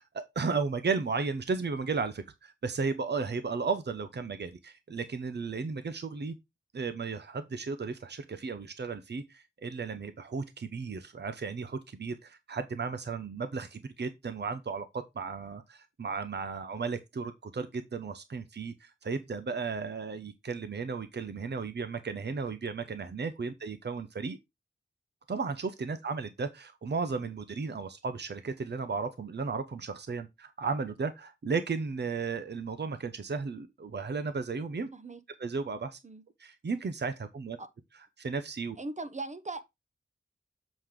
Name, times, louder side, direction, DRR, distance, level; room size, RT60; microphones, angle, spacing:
voice 1, 0.0-6.3 6.7-24.4 25.3-34.9 35.4-36.0 36.4-37.6 38.2-38.8, right 4 dB, 55° right, 0.9 m, -34 dB
voice 2, 38.8-39.8, right 2 dB, 35° right, 1.1 m, -39 dB
7.6 x 5.0 x 3.7 m
cardioid pair, 60°, 20 cm